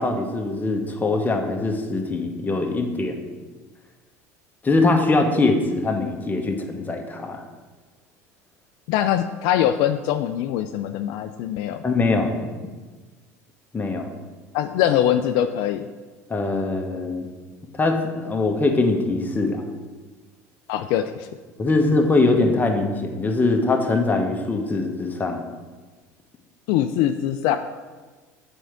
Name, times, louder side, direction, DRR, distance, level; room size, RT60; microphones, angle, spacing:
voice 1, 0.0-3.3 4.6-7.4 11.8-12.3 13.7-14.1 16.3-17.3 17.8-19.6 21.6-25.4, left 3 dB, 20° left, 3 dB, 1.2 m, -22 dB
voice 2, 8.9-11.8 14.5-15.9 20.7-21.3 26.7-27.6, left 11 dB, 60° left, 8 dB, 0.4 m, -22 dB
7.7 x 4.5 x 5.0 m, 1.4 s
hypercardioid pair, 75°, 8 cm